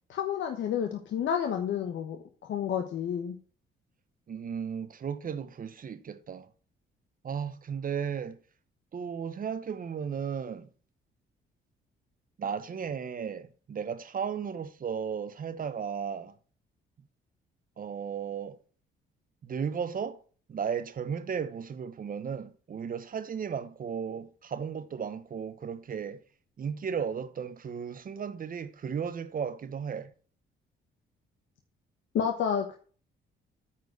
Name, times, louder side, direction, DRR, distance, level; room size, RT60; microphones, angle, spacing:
voice 1, 0.1-2.2 2.5-3.4 32.1-32.8, left 8 dB, 70° left, 1.2 m, -30 dB
voice 2, 4.3-6.5 7.2-8.4 8.9-10.7 12.4-16.3 17.8-18.6 19.4-20.2 20.5-26.2 26.6-30.1, right 7 dB, 45° right, 1.0 m, -35 dB
9.5 x 4.6 x 6.5 m
cardioid pair, 90°, 20 cm